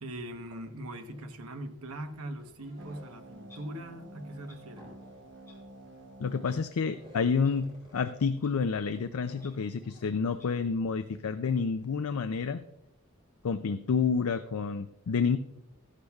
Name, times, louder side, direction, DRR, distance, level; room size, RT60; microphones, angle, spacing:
voice 1, 0.0-4.9, right 1 dB, 85° right, 7 dB, 1.0 m, -41 dB
sound 1, 1.1-1.4 1.7-3.4 3.9-8.5 8.8-10.7, equal, 25° right, 4.2 m, -56 dB
sound 2, 2.8-7.8, right 1 dB, 60° right, 1.0 m, -51 dB
Clock, 3.5-3.6 4.5-4.6 5.5-5.6 6.4-6.5 7.4-7.5 8.4-8.5 9.4-9.5 10.4-10.5, left 3 dB, 15° left, 3.9 m, -55 dB
voice 2, 6.2-12.6 13.4-15.4, left 5 dB, 80° left, 9 dB, 0.4 m, -29 dB
14.5 x 11.5 x 2.3 m, 0.85 s
head